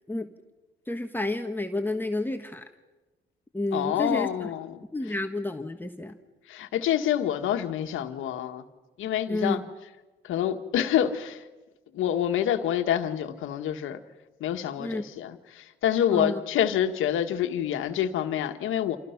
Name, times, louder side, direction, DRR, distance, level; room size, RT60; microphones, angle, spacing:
voice 1, 0.9-2.7 3.5-4.5 4.9-6.2 9.3-9.7 14.8-15.0 16.1-16.4, left 2 dB, 10° left, 1.4 m, -30 dB
voice 2, 3.7-4.8 6.5-8.6 9.0-9.6 10.2-11.4 11.9-14.0 14.4-19.0, left 10 dB, 85° left, 1.6 m, -27 dB
28.0 x 27.5 x 5.9 m
cardioid pair, 90°, 20 cm